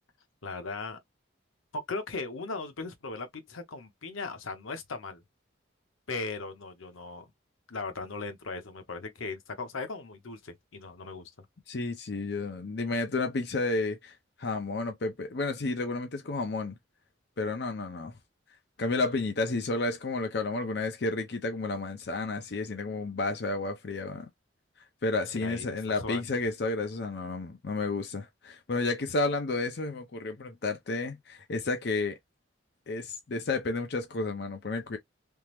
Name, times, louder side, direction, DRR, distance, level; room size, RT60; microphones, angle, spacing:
voice 1, 0.4-1.0 1.7-5.2 6.1-7.3 7.7-11.5 25.4-26.2, left 3 dB, 85° left, 0.9 m, -38 dB
voice 2, 11.7-16.8 17.4-18.1 18.8-24.3 25.0-32.2 32.9-35.0, left 3 dB, 55° left, 0.5 m, -31 dB
3.5 x 2.0 x 2.9 m
head